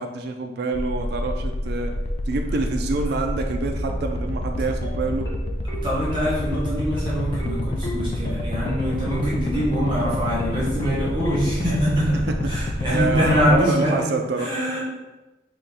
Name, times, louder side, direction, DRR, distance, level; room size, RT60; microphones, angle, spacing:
voice 1, 0.0-1.9 2.3-5.3 11.6-11.7 12.3-14.5, right 3 dB, 55° right, 4 dB, 0.3 m, -27 dB
sound 1, 0.7-13.5, left 1 dB, 35° left, 0.3 m, -28 dB
sound 2, 4.8-11.8, right 1 dB, 15° left, 0.7 m, -36 dB
voice 2, 5.8-12.2 12.5-14.1 14.4-14.8, equal, 25° right, -7 dB, 0.8 m, -24 dB
3.9 x 2.4 x 3.3 m, 1.1 s
head